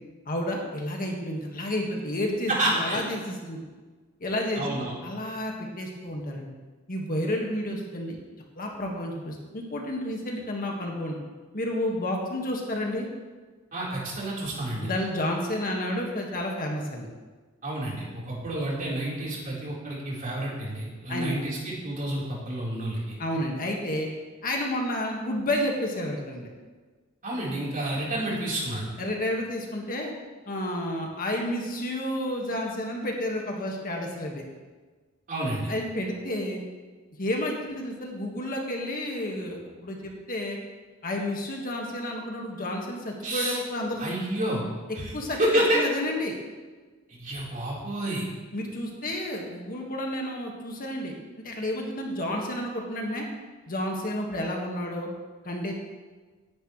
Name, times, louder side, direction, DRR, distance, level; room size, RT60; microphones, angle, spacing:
voice 1, 0.2-3.6 4.2-6.5 6.9-8.2 8.6-11.2 11.5-13.1 14.8-17.1 21.1-21.3 23.2-24.1 24.4-26.5 29.0-30.1 30.5-34.4 35.7-36.6 37.2-40.6 41.0-44.0 45.1-45.4 45.7-46.4 48.5-53.3 53.7-55.1 55.4-55.7, left 1 dB, 45° left, 0 dB, 1.8 m, -31 dB
voice 2, 2.5-3.0 4.6-4.9 13.7-14.9 17.6-23.2 27.2-28.9 35.3-35.7 43.2-43.6 44.0-44.6 45.0-45.1 45.4-45.8 47.1-48.2, right 1 dB, 40° right, -5 dB, 4.2 m, -29 dB
17.5 x 10.5 x 3.3 m, 1.4 s
head